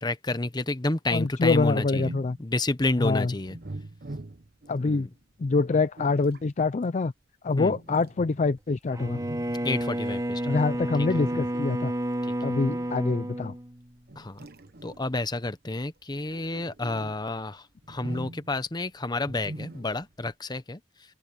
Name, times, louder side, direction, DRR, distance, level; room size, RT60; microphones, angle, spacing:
voice 1, 0.0-2.1 2.4-3.6 4.8-5.1 7.6-7.8 9.6-10.6 12.2-12.5 14.2-14.4 14.8-20.8, left 2 dB, 25° left, 0.9 m, -30 dB
voice 2, 1.1-2.4 3.0-3.3 4.7-5.1 5.4-7.1 7.4-9.2 10.5-11.9 12.4-13.5, left 3 dB, 40° left, 0.4 m, -25 dB
sound 1, 1.7-2.4 3.4-4.8 5.5-6.5 7.7-8.6 9.0-9.8 11.0-11.8 12.7-13.0 14.1-15.2 16.0-17.2 17.8-18.6 19.2-20.1, right 1 dB, 55° right, 1.2 m, -42 dB
Bowed string instrument, 8.9-14.2, right 1 dB, 20° right, 2.4 m, -31 dB
open air
head